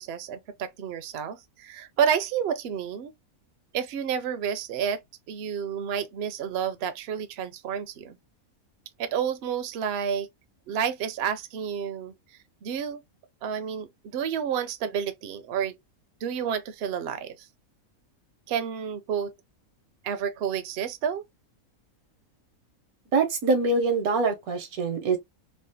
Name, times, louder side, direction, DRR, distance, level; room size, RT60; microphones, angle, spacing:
voice 1, 0.0-3.1 3.7-5.0 5.3-8.2 9.0-10.3 10.7-12.1 12.6-13.0 13.4-15.8 16.2-17.5 18.5-19.3 20.0-21.2, right 8 dB, 65° right, 0.7 m, -30 dB
voice 2, 23.1-25.2, right 3 dB, 85° right, 1.3 m, -24 dB
3.3 x 2.1 x 2.7 m
omnidirectional pair, 1.5 m